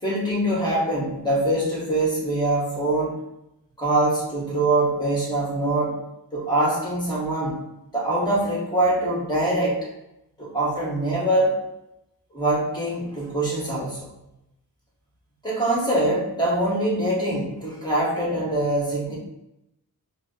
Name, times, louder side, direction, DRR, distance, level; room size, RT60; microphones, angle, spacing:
voice 1, 0.0-3.2 3.8-6.0 6.3-7.6 7.9-9.8 10.4-11.6 12.3-14.1 15.4-19.2, right 1 dB, 10° left, -6 dB, 1.5 m, -23 dB
4.4 x 2.0 x 2.8 m, 0.90 s
wide cardioid pair, 65°, 37 cm